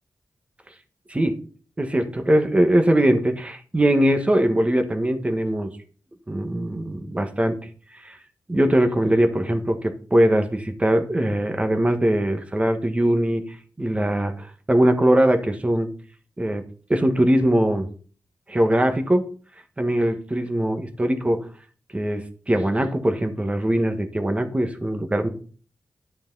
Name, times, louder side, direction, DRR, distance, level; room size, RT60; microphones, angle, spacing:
voice 1, 1.8-5.7 6.3-7.6 8.0-8.2 8.5-13.4 13.8-15.9 16.4-16.6 16.9-17.9 18.5-19.2 19.8-21.5 21.9-25.3, right 1 dB, 20° right, 6 dB, 1.5 m, -21 dB
11.5 x 6.7 x 4.0 m, 0.41 s
wide cardioid pair, 85°, 6 cm